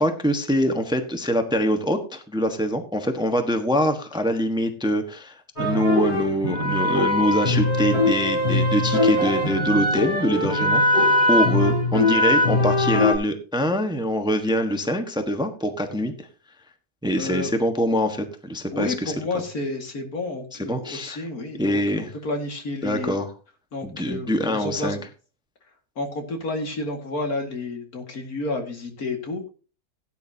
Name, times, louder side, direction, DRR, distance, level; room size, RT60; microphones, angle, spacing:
voice 1, 0.0-16.3 17.0-19.1 20.5-21.2 21.6-22.1 22.8-23.3 23.8-25.0, equal, 5° right, 6 dB, 1.2 m, -24 dB
sound 1, 5.6-13.2, left 1 dB, 40° left, 6.6 m, -21 dB
voice 2, 17.2-17.5 18.7-23.2 23.7-25.0 26.0-29.5, left 2 dB, 70° left, 4 dB, 2.6 m, -30 dB
17.0 x 9.6 x 2.8 m, 0.35 s
omnidirectional pair, 1.6 m